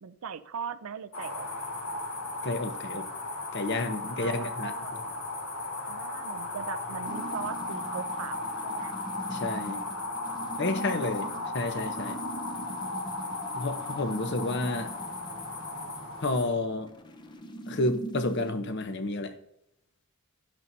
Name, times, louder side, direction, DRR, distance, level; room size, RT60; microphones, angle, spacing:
voice 1, 0.0-1.5 4.2-4.9 5.9-8.9 10.9-11.5, right 7 dB, 75° right, 12 dB, 0.5 m, -40 dB
sound 1, 1.1-16.5, left 2 dB, 70° left, 2.5 m, -36 dB
voice 2, 2.4-3.1 3.5-5.0 9.3-9.8 10.6-11.3 11.5-12.2 13.6-14.9 16.2-16.9 17.7-19.3, left 2 dB, 50° left, 7 dB, 0.9 m, -30 dB
sound 2, 7.1-18.5, right 1 dB, 20° left, 0.6 m, -42 dB
12.5 x 10.5 x 2.7 m, 0.81 s
head